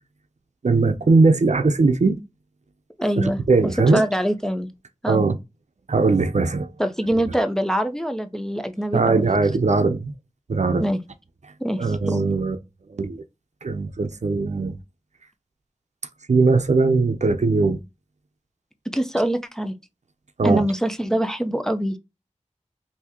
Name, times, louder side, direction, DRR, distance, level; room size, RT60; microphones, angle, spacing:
voice 1, 0.6-2.2 3.2-4.1 5.1-5.4 5.9-6.7 8.9-10.1 10.5-10.8 11.8-12.6 12.9-13.2 13.6-14.7 16.3-17.8 20.4-20.6, right 3 dB, 70° right, 0.6 m, -19 dB
voice 2, 3.0-4.7 5.0-5.2 6.8-9.3 10.8-11.0 11.6-12.3 18.9-19.7 20.4-22.0, equal, 5° left, 0.6 m, -24 dB
3.5 x 2.8 x 2.9 m
wide cardioid pair, 40°, 12 cm